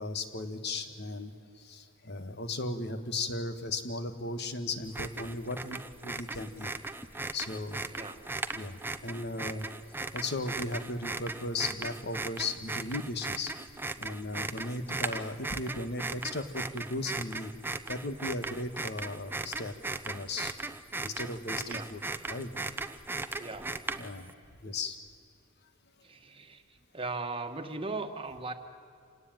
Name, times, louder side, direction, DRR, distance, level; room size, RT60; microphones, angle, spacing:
voice 1, 0.0-6.7 7.3-7.8 8.5-9.7 10.1-13.5 14.0-17.5 17.9-19.7 20.0-20.5 21.0-22.0 22.3-22.5 24.0-24.3 24.6-25.0, left 2 dB, 55° left, 9 dB, 1.7 m, -36 dB
sound 1, 4.9-24.3, right 2 dB, 10° right, 0.8 m, -38 dB
voice 2, 23.4-23.7 26.0-26.6 26.9-28.5, right 3 dB, 25° right, 6 dB, 1.6 m, -38 dB
27.0 x 18.0 x 9.2 m, 2.4 s
head